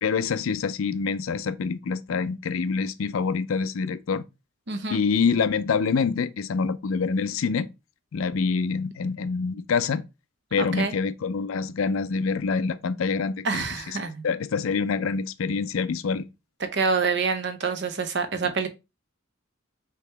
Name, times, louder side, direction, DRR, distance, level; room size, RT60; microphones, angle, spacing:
voice 1, 0.0-4.2 4.9-7.7 8.1-10.0 10.5-14.0 14.2-16.3 18.4-18.5, left 5 dB, 80° left, 0.4 m, -26 dB
voice 2, 4.7-5.0 10.6-10.9 13.4-14.2 16.7-18.7, right 4 dB, 55° right, 0.7 m, -26 dB
4.9 x 3.0 x 3.3 m
head